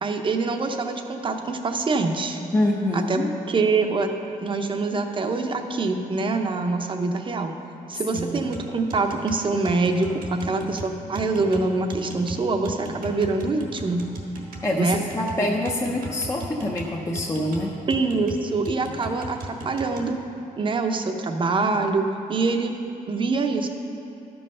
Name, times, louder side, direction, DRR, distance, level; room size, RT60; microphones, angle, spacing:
voice 1, 0.0-2.4 2.9-4.1 4.4-7.5 7.9-14.0 14.8-15.0 15.5-15.6 17.9-20.2 20.6-22.7 23.1-23.7, right 3 dB, 35° right, 5 dB, 0.7 m, -25 dB
voice 2, 2.5-3.3 8.1-8.6 14.6-17.7, left 1 dB, 20° left, -2 dB, 0.6 m, -25 dB
sound 1, 8.1-20.1, right 2 dB, 75° right, 1.4 m, -37 dB
12.5 x 5.5 x 5.5 m, 2.7 s
cardioid pair, 125°, 15 cm